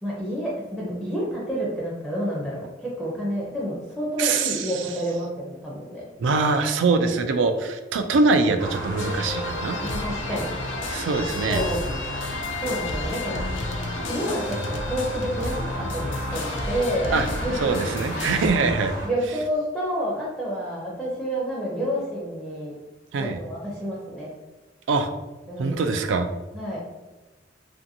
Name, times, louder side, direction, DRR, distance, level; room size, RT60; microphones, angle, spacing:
voice 1, 0.0-6.0 9.8-10.6 11.5-11.9 12.6-13.5 14.1-17.7 19.0-22.7 23.2-24.3 25.5-25.8 26.5-26.8, equal, ahead, -6 dB, 0.4 m, -29 dB
voice 2, 4.2-4.9 6.2-9.8 10.9-11.6 17.1-17.3 17.6-18.9 23.1-23.4 24.9-25.1 25.6-26.3, right 3 dB, 90° right, 8 dB, 0.3 m, -23 dB
sound 1, 8.6-19.1, right 1 dB, 50° right, 0.8 m, -34 dB
sound 2, 9.0-18.5, left 3 dB, 85° left, 0.4 m, -32 dB
2.6 x 2.5 x 2.6 m, 1.2 s
head